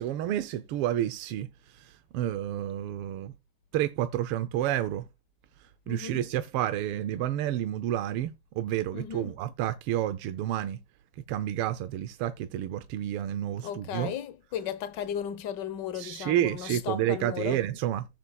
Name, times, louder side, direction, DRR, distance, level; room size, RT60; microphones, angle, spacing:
voice 1, 0.0-3.3 3.7-5.1 5.9-10.8 11.3-14.1 15.9-18.1, right 12 dB, 85° right, 1.6 m, -30 dB
voice 2, 5.9-6.2 8.9-9.3 13.6-17.6, left 9 dB, 60° left, 1.5 m, -35 dB
15.0 x 7.8 x 2.3 m
omnidirectional pair, 2.4 m